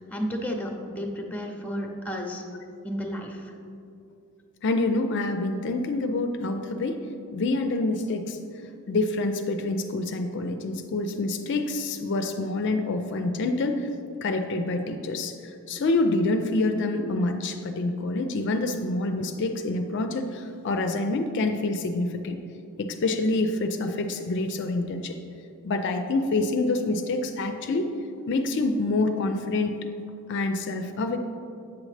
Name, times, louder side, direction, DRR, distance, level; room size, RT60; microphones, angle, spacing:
voice 1, 0.0-2.4 2.8-3.5, equal, 5° left, 2 dB, 0.6 m, -32 dB
voice 2, 4.6-7.0 7.3-8.4 8.9-13.9 14.2-22.4 22.8-25.2 25.6-27.9 28.3-29.7 30.3-31.2, left 2 dB, 55° left, 6 dB, 0.4 m, -27 dB
8.1 x 6.3 x 3.2 m, 2.6 s
head